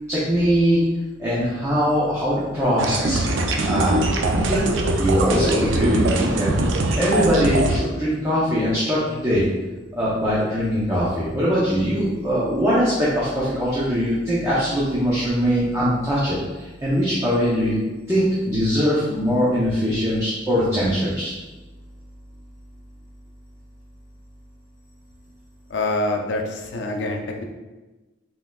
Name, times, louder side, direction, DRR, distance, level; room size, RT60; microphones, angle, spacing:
voice 1, 0.1-0.8 1.2-3.2 3.6-4.0 4.3-4.6 5.0-6.5 7.0-9.4 9.9-17.8 18.1-21.3, equal, 15° right, -9 dB, 0.7 m, -21 dB
sound 1, 2.8-7.8, right 2 dB, 80° right, 0.4 m, -22 dB
voice 2, 25.7-27.4, left 2 dB, 70° left, 2 dB, 0.5 m, -25 dB
3.9 x 3.8 x 2.3 m, 1.2 s
head